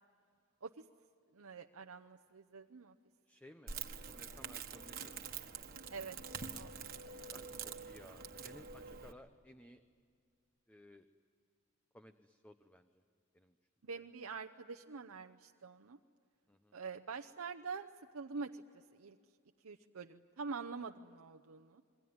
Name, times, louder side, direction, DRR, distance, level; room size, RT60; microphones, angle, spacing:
voice 1, 1.3-2.9 5.9-6.2 6.5-6.7 13.8-16.0 16.7-17.9 18.1-18.6 19.0-19.2 19.6-21.8, right 4 dB, 85° right, 5 dB, 0.8 m, -45 dB
voice 2, 3.3-3.8 4.1-5.2 7.3-9.8 10.7-11.1 11.9-13.0 13.3-13.6 16.5-16.8, left 1 dB, 5° left, 8 dB, 0.7 m, -58 dB
Crackle, 3.7-9.1, right 6 dB, 45° right, 1.5 m, -46 dB
27.0 x 22.0 x 9.5 m, 2.3 s
head